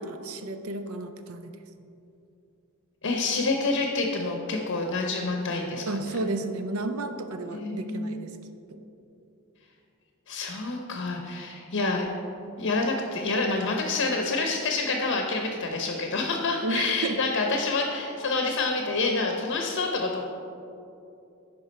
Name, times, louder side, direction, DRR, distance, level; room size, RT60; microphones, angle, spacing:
voice 1, 0.0-1.6 5.9-8.3 8.7-8.8 16.6-17.2, right 2 dB, 70° right, 8 dB, 0.5 m, -32 dB
voice 2, 3.0-6.1 7.5-8.2 10.3-12.1 12.6-20.2, left 3 dB, 65° left, 2 dB, 0.8 m, -28 dB
10.5 x 4.7 x 4.2 m, 2.7 s
head